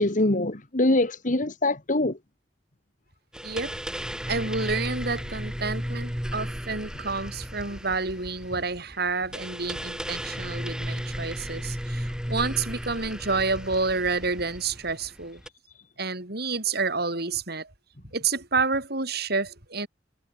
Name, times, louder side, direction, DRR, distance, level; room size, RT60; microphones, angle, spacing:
voice 1, 0.0-2.2, left 2 dB, 45° left, 1.8 m, -23 dB
sound 1, 3.3-15.5, equal, 5° right, 7.1 m, -34 dB
voice 2, 3.4-3.8 4.2-15.4 16.0-17.7 18.1-19.9, right 4 dB, 60° right, 5.4 m, -29 dB
head